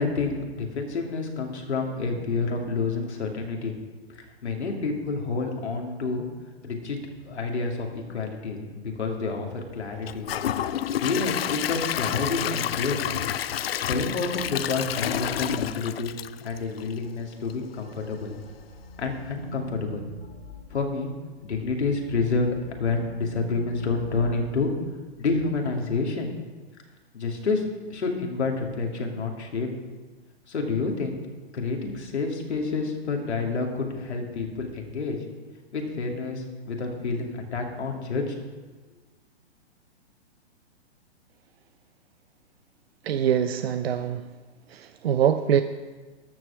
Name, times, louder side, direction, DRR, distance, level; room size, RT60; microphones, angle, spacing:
voice 1, 0.0-3.7 4.1-6.3 6.6-7.0 7.3-10.4 11.0-13.0 13.9-16.1 16.4-18.3 19.0-20.1 20.7-21.1 21.4-24.7 25.2-26.3 27.1-29.8 30.5-31.2 31.5-35.2 35.7-38.3, left 4 dB, 75° left, 1 dB, 2.6 m, -29 dB
Gurgling / Toilet flush / Trickle dribble, 10.0-17.1 17.5-17.6 18.1-18.2, left 10 dB, 60° left, 0.6 m, -29 dB
sound 1, 17.7-21.6 22.0-25.4, right 1 dB, 25° left, 3.0 m, -43 dB
voice 2, 43.0-44.2 44.7-45.6, right 9 dB, 60° right, 9 dB, 0.7 m, -24 dB
13.0 x 6.2 x 7.0 m, 1.3 s
hypercardioid pair, 120°, 34 cm